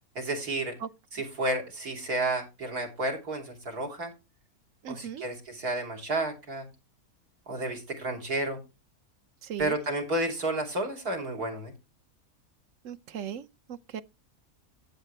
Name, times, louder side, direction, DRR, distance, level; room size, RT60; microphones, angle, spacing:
voice 1, 0.2-0.7 1.1-4.1 4.9-6.7 7.5-8.6 9.6-11.7, right 2 dB, 80° right, 3.6 m, -31 dB
voice 2, 4.8-5.2 9.4-9.8 12.8-14.0, right 8 dB, 65° right, 1.0 m, -38 dB
11.5 x 8.2 x 3.3 m
omnidirectional pair, 1.6 m